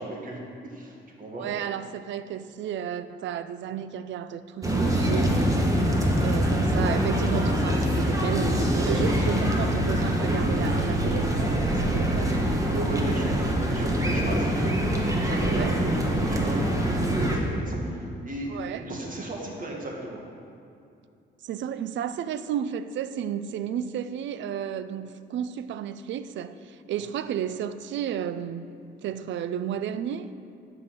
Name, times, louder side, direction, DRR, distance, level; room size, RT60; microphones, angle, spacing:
voice 1, 0.0-1.5 12.7-13.4 13.6-14.7 15.1-20.2 27.0-27.1, right 2 dB, 45° right, 1.9 m, -35 dB
voice 2, 1.4-5.6 6.2-12.4 14.3-14.4 15.5-16.1 18.5-18.9 21.4-28.7 29.0-30.3, right 9 dB, 70° right, 0.5 m, -32 dB
sound 1, 4.6-17.4, equal, 15° right, 1.4 m, -24 dB
10.5 x 5.7 x 5.9 m
cardioid pair, 90°, 20 cm